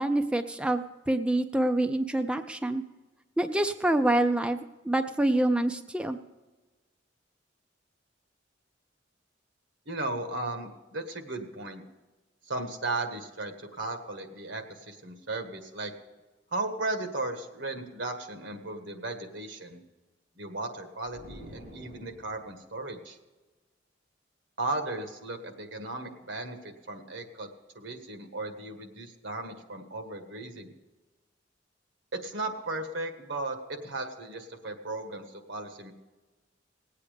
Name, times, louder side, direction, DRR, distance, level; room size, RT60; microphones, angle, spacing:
voice 1, 0.0-2.8 3.4-6.2, right 1 dB, 5° right, 7 dB, 0.4 m, -26 dB
voice 2, 9.8-11.8 12.5-15.9 16.5-19.8 20.3-23.2 24.6-27.5 27.7-30.7 32.1-35.9, right 2 dB, 75° right, 6 dB, 1.6 m, -36 dB
sound 1, 21.1-22.7, equal, 45° right, 3.4 m, -48 dB
19.0 x 8.5 x 5.1 m, 1.2 s
head